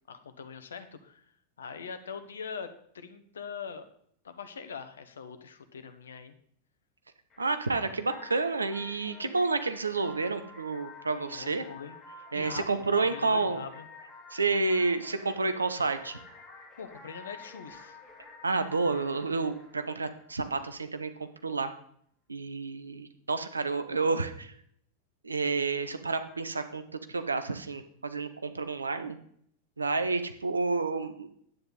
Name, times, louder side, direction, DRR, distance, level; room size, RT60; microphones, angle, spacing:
voice 1, 0.1-1.2 1.6-3.8 4.2-6.3 11.3-13.9 16.8-18.0, left 6 dB, 70° left, 10 dB, 1.1 m, -42 dB
sound 1, 7.3-20.8, left 3 dB, 25° left, 3.4 m, -50 dB
voice 2, 7.4-11.6 12.3-13.6 14.3-16.2 18.4-21.7 22.3-24.5 25.2-26.8 27.1-29.2 29.8-31.3, right 3 dB, 75° right, 10 dB, 0.9 m, -30 dB
9.7 x 9.2 x 4.1 m, 0.65 s
figure-of-eight pair, 90°, 0 cm